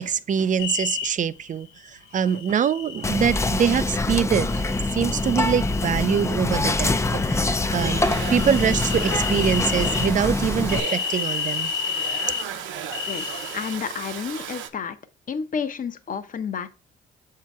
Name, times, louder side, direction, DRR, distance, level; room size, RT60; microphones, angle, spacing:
voice 1, 0.0-4.6 4.9-7.5 7.7-8.0 8.3-11.7, right 8 dB, 40° right, 0.4 m, -24 dB
sound 1, 0.6-1.1 2.2-3.8 4.4-6.4 6.7-10.1 10.7-12.4 12.9-13.8, left 7 dB, 90° left, 0.7 m, -32 dB
Whispering, 3.0-10.8, left 2 dB, 15° left, 0.4 m, -24 dB
Domestic sounds home sounds, 7.7-14.7, right 8 dB, 90° right, 0.7 m, -35 dB
voice 2, 13.1-15.0 15.3-16.7, left 6 dB, 45° left, 0.8 m, -30 dB
7.2 x 2.8 x 4.6 m
cardioid pair, 80°, 19 cm